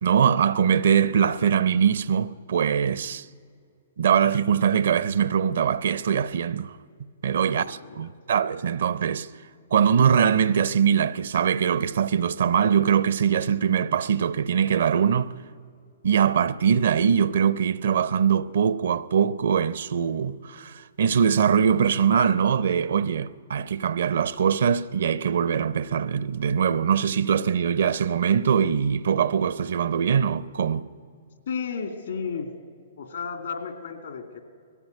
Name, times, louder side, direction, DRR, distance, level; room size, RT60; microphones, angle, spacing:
voice 1, 0.0-3.2 4.0-6.8 7.2-9.3 9.7-15.3 16.0-30.9, right 7 dB, 70° right, 0.6 m, -22 dB
voice 2, 7.2-8.1 31.5-32.5 33.0-34.4, left 6 dB, 75° left, 2.4 m, -33 dB
19.0 x 14.5 x 9.3 m
hypercardioid pair, 130°, 0 cm